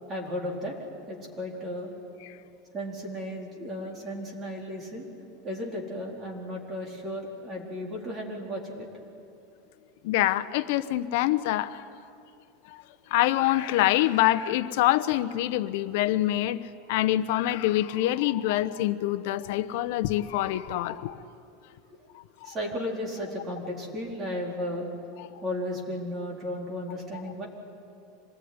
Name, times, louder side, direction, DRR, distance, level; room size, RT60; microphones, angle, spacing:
voice 1, 0.1-0.7 1.1-1.9 2.7-5.1 5.4-8.9 22.4-24.9 25.4-27.5, equal, 20° right, -1 dB, 4.2 m, -34 dB
voice 2, 10.0-11.8 13.1-16.6 16.9-21.2 22.5-22.6 25.2-25.3, left 14 dB, 60° left, 13 dB, 0.9 m, -25 dB
26.0 x 20.0 x 9.7 m, 2.8 s
supercardioid pair, 170°, 0 cm